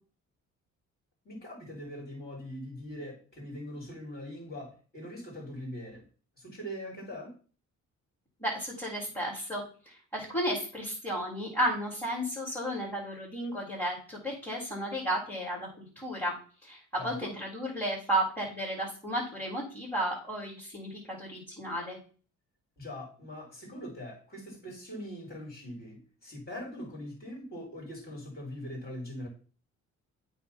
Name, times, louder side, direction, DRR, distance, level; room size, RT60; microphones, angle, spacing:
voice 1, 1.2-6.0 6.4-7.3 17.0-17.3 22.8-29.3, equal, 30° left, -1 dB, 4.1 m, -42 dB
voice 2, 8.4-16.4 16.6-22.0, right 1 dB, 10° left, -6 dB, 3.6 m, -33 dB
8.5 x 3.5 x 5.8 m, 0.39 s
cardioid pair, 90°, 30 cm